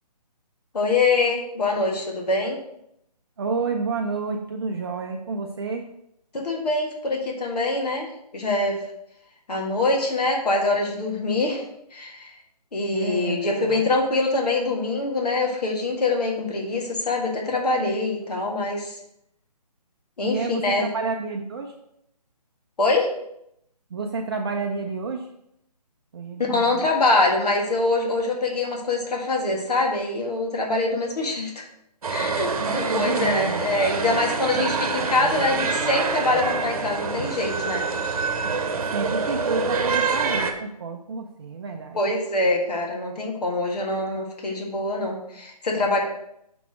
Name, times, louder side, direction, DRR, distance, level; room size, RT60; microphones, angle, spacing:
voice 1, 0.7-2.6 6.3-8.8 9.5-11.6 11.9-12.3 12.7-19.0 20.2-20.9 22.8-23.1 26.4-31.6 32.1-37.9 41.9-46.0, left 2 dB, 70° left, 0 dB, 1.7 m, -24 dB
voice 2, 3.4-5.8 12.9-13.9 20.2-21.7 23.9-25.3 26.1-26.9 32.6-33.6 38.9-42.0, right 4 dB, 40° right, 2 dB, 0.5 m, -30 dB
sound 1, 32.0-40.5, right 4 dB, 60° right, 0.9 m, -26 dB
5.9 x 4.1 x 6.1 m, 0.78 s
hypercardioid pair, 160°, 21 cm